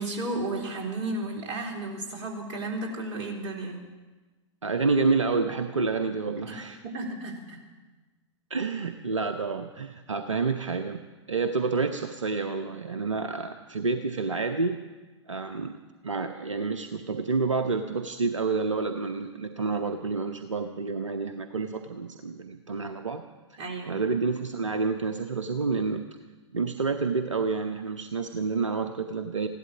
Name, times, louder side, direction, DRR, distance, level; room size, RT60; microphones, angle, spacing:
voice 1, 0.0-3.8 6.5-7.6 23.6-24.0, right 2 dB, 40° right, 0 dB, 3.9 m, -33 dB
voice 2, 4.6-6.8 8.5-11.0 11.3-14.8 15.3-15.8 16.0-23.2 23.5-23.6 23.9-26.0 26.5-29.5, right 4 dB, 80° right, 8 dB, 0.9 m, -29 dB
15.5 x 12.0 x 7.2 m, 1.2 s
figure-of-eight pair, 100°, 16 cm